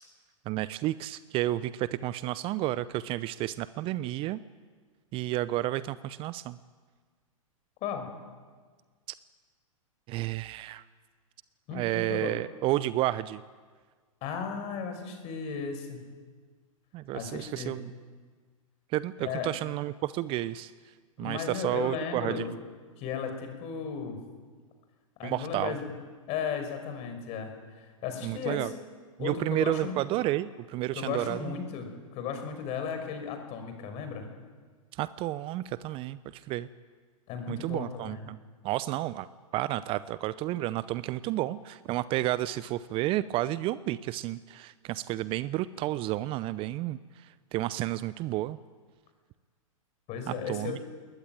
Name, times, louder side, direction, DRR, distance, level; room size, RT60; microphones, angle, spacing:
voice 1, 0.5-4.4 5.1-6.6 10.1-10.8 11.7-13.4 16.9-17.9 18.9-20.7 21.2-22.5 25.2-25.8 28.2-28.7 29.2-31.5 34.9-36.7 37.5-38.4 38.6-48.6 50.3-50.9, right 16 dB, 30° right, 17 dB, 0.7 m, -31 dB
voice 2, 7.8-8.1 11.7-12.4 14.2-16.0 17.1-17.8 19.2-19.5 21.2-22.5 23.0-24.2 25.2-25.9 26.3-28.7 29.2-30.0 30.9-31.9 32.1-34.3 37.3-38.3 50.1-50.8, left 6 dB, 35° left, 6 dB, 5.5 m, -35 dB
21.0 x 20.0 x 9.2 m, 1.5 s
figure-of-eight pair, 110°, 18 cm